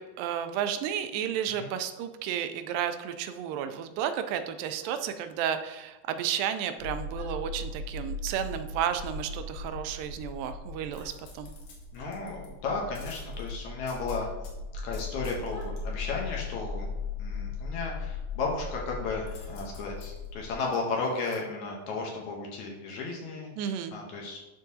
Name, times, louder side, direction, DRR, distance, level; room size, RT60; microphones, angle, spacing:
voice 1, 0.0-11.5 23.6-24.0, right 9 dB, 85° right, 9 dB, 2.3 m, -32 dB
sound 1, 4.8-5.0 7.1-7.3 9.3-9.5 10.8-11.1 11.9-12.1 14.2-14.4 15.5-15.7, right 2 dB, 15° left, 1.6 m, -52 dB
sound 2, 6.8-20.5, left 3 dB, 60° right, 1.0 m, -38 dB
sound 3, 10.9-12.5 13.0-14.5 14.9-15.8 19.3-21.4 21.8-21.9, left 5 dB, 90° left, 3.0 m, -53 dB
voice 2, 11.9-14.3 14.8-16.9 17.2-24.4, left 3 dB, 70° left, -1 dB, 2.0 m, -34 dB
11.5 x 3.8 x 2.7 m, 1.0 s
omnidirectional pair, 3.9 m